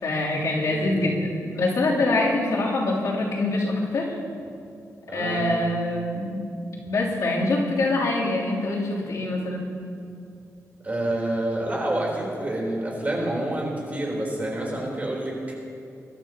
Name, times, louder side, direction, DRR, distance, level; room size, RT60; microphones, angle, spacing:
voice 1, 0.0-4.1 5.1-6.5 6.8-9.7, left 2 dB, 75° left, -6 dB, 3.4 m, -24 dB
voice 2, 0.6-1.0 5.1-5.5 10.8-15.5, right 1 dB, 25° right, -3 dB, 3.9 m, -28 dB
23.0 x 12.5 x 3.0 m, 2.5 s
wide cardioid pair, 110°, 6 cm